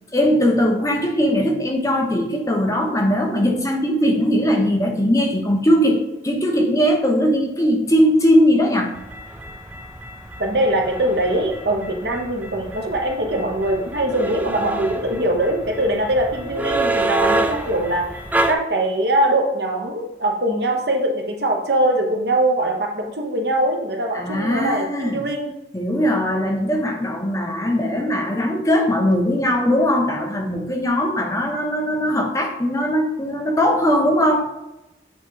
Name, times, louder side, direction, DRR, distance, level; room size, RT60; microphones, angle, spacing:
voice 1, 0.1-8.9 24.1-25.2 25.7-34.4, equal, 20° left, 1 dB, 0.9 m, -19 dB
sound 1, 8.9-18.5, right 2 dB, 10° right, 0.4 m, -28 dB
voice 2, 10.4-18.2 18.5-25.5, right 1 dB, 60° right, 2 dB, 1.1 m, -22 dB
8.2 x 3.2 x 4.6 m, 0.92 s
head